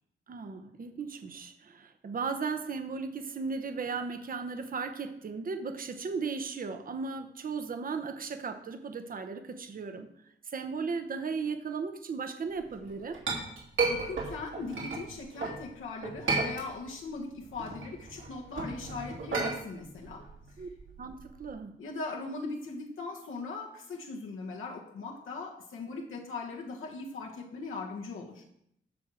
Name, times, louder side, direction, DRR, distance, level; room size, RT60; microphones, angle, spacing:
voice 1, 0.3-10.1 10.4-13.2 20.6-20.7 21.0-21.8, right 5 dB, 45° right, 7 dB, 0.9 m, -36 dB
Chink clink, 12.7-15.6 16.0-17.1 17.4-21.5, right 3 dB, 75° right, 3.3 m, -33 dB
voice 2, 13.9-20.3 21.8-28.4, left 3 dB, 80° left, -1 dB, 1.3 m, -40 dB
12.0 x 4.6 x 6.2 m, 0.76 s
wide cardioid pair, 140°, 21 cm